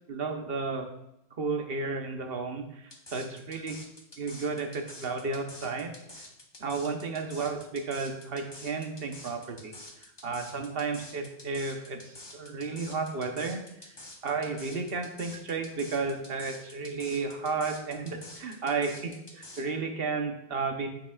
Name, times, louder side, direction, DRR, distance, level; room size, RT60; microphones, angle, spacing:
voice 1, 0.1-0.9 1.4-3.8 4.2-5.9 6.6-9.7 10.2-13.6 14.2-20.9, right 4 dB, 65° right, 4 dB, 1.1 m, -33 dB
sound 1, 2.9-19.6, left 2 dB, 25° left, 1.0 m, -47 dB
9.5 x 7.0 x 2.4 m, 0.84 s
omnidirectional pair, 1.1 m